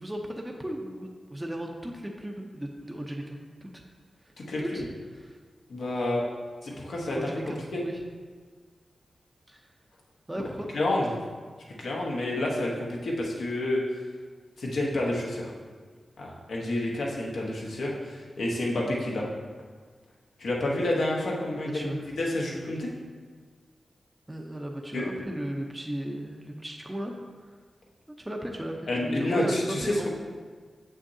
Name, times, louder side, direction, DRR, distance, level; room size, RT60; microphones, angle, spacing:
voice 1, 0.0-3.8 4.2-4.3 4.6-4.9 5.2-5.4 7.1-8.0 9.5-9.6 10.3-10.7 21.5-22.1 24.3-27.2 28.1-30.1, right 1 dB, 15° right, 1 dB, 0.6 m, -36 dB
voice 2, 5.7-6.3 6.6-7.2 7.7-7.8 10.7-11.1 11.8-13.8 14.6-15.5 16.2-19.3 20.4-22.9 24.9-25.0 28.9-30.1, left 1 dB, 85° left, -2 dB, 1.1 m, -29 dB
6.9 x 6.1 x 2.7 m, 1.5 s
wide cardioid pair, 85°, 0 cm